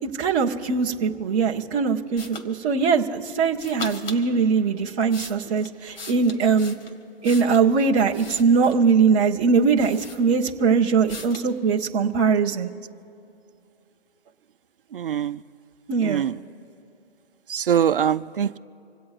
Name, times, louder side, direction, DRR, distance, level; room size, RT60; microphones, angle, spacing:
voice 1, 0.0-6.8 7.2-12.7 15.9-16.2, right 5 dB, 10° right, -3 dB, 0.5 m, -21 dB
sound 1, 2.2-2.5 3.6-4.2 4.8-7.7 8.1-8.9 9.4-9.5 9.8-10.7 11.1-11.5, left 3 dB, 60° left, 2.2 m, -39 dB
voice 2, 14.9-15.4 16.0-16.3 17.5-18.6, right 9 dB, 55° right, 12 dB, 0.6 m, -23 dB
27.0 x 17.0 x 2.4 m, 2.6 s
hypercardioid pair, 150°, 32 cm